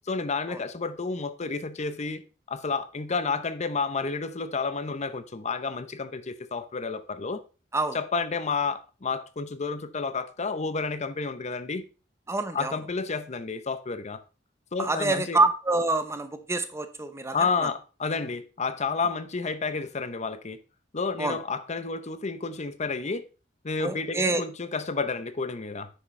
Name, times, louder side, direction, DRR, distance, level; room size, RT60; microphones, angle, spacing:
voice 1, 0.1-2.2 2.5-7.4 7.9-11.8 12.5-14.2 14.7-15.4 17.3-20.6 20.9-23.2 23.6-25.9, left 4 dB, 35° left, 0.7 m, -30 dB
voice 2, 12.3-12.8 14.8-17.7 21.2-21.4 23.8-24.4, right 2 dB, 15° right, 0.7 m, -26 dB
9.6 x 6.0 x 3.2 m
head